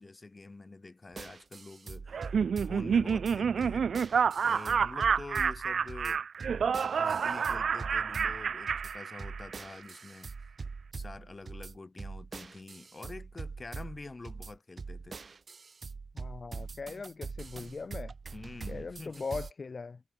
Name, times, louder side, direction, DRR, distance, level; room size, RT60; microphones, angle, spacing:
voice 1, 0.0-3.9 4.4-6.3 6.6-10.3 10.9-15.2 18.3-19.3, left 3 dB, 40° left, 7.8 m, -47 dB
sound 1, 1.1-19.5, right 4 dB, 60° right, 1.9 m, -43 dB
Laughter, 2.1-9.6, right 6 dB, 75° right, 0.6 m, -29 dB
voice 2, 16.1-18.1 18.7-20.0, left 4 dB, 55° left, 1.9 m, -40 dB
cardioid pair, 40°, 0 cm